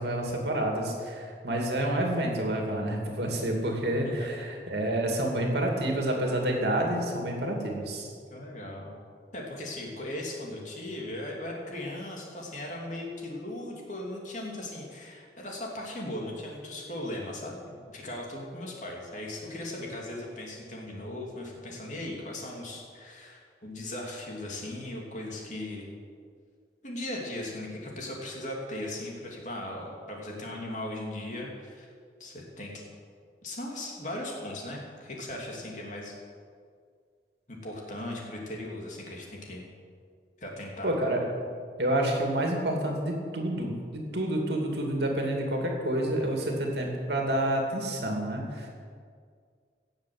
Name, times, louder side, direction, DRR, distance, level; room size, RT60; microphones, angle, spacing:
voice 1, 0.0-8.1 40.8-41.2 41.8-48.7, right 1 dB, 70° right, 1 dB, 2.6 m, -29 dB
voice 2, 8.3-8.9 9.3-25.9 26.8-31.9 32.2-32.7 33.4-36.2 37.6-39.6 40.4-40.9, left 1 dB, 45° left, -2 dB, 2.9 m, -38 dB
17.5 x 7.2 x 7.8 m, 2.1 s
head